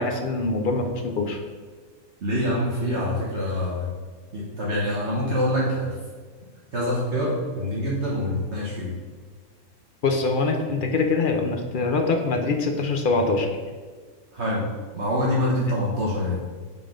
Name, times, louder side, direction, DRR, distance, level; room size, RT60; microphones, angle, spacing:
voice 1, 0.0-1.4 10.0-13.5, left 3 dB, 50° left, 4 dB, 0.7 m, -24 dB
voice 2, 2.2-3.9 4.3-6.0 6.7-8.9 14.3-14.6 14.9-16.4, left 1 dB, 50° right, -5 dB, 1.4 m, -25 dB
7.0 x 3.9 x 4.9 m, 1.5 s
omnidirectional pair, 1.5 m